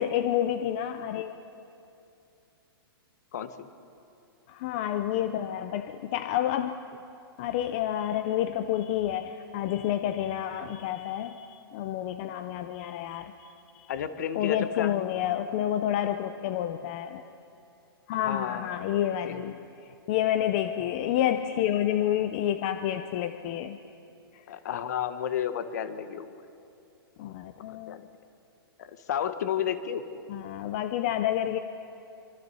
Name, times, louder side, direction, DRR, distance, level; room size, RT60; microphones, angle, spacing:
voice 1, 0.0-1.3 4.5-6.7 7.4-13.5 13.7-13.9 14.3-17.2 18.1-19.6 20.1-23.8 24.3-24.4 27.2-28.0 30.3-31.6, left 11 dB, 20° left, 9 dB, 0.5 m, -29 dB
voice 2, 3.3-3.7 13.9-15.1 18.2-19.6 24.5-26.3 27.7-28.0 28.8-30.0, left 9 dB, 45° left, 11 dB, 1.2 m, -32 dB
25.0 x 24.5 x 5.6 m, 2.6 s
hypercardioid pair, 175°, 13 cm